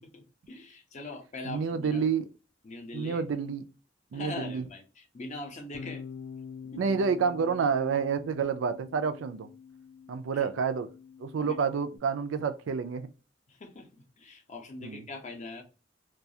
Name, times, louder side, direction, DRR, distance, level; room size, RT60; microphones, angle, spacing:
voice 1, 0.0-2.1 2.6-3.2 4.1-6.0 6.7-6.8 10.3-10.5 11.4-11.7 13.5-15.6, left 2 dB, 40° left, 0.6 m, -42 dB
voice 2, 1.5-2.3 2.9-3.6 4.1-4.6 6.8-9.5 10.1-10.9 11.2-13.1 14.8-15.0, right 6 dB, 85° right, 0.4 m, -29 dB
Bass guitar, 5.7-12.0, left 6 dB, 85° left, 0.4 m, -46 dB
2.3 x 2.3 x 2.7 m
head